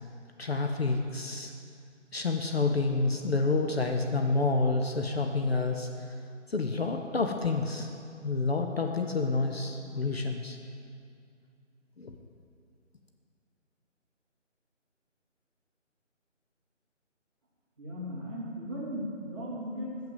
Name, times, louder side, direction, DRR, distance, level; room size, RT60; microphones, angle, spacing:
voice 1, 0.4-1.5 2.1-5.9 6.5-7.9 8.2-10.6 12.0-12.1, left 3 dB, 55° left, 4 dB, 0.7 m, -28 dB
voice 2, 17.8-20.1, equal, 20° right, -10 dB, 1.9 m, -37 dB
6.7 x 6.2 x 7.3 m, 2.4 s
figure-of-eight pair, 170°, 38 cm